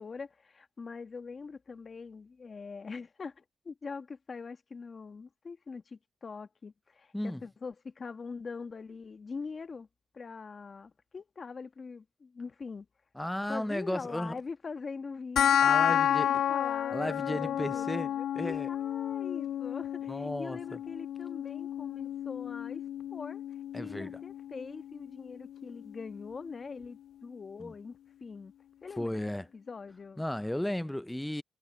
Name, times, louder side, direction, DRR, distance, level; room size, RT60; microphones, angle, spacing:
voice 1, 0.0-9.9 10.1-12.9 13.5-22.8 23.1-23.4 23.7-28.5 28.8-30.2, left 4 dB, 45° left, 1.5 m, -43 dB
voice 2, 13.2-14.4 15.6-16.3 16.9-18.1 18.4-18.7 20.1-20.6 23.7-24.2 27.6-27.7 29.0-29.5 30.2-31.4, left 1 dB, 5° left, 0.6 m, -34 dB
sound 1, 15.4-26.3, left 10 dB, 75° left, 0.4 m, -31 dB
cardioid pair, 75°, 0 cm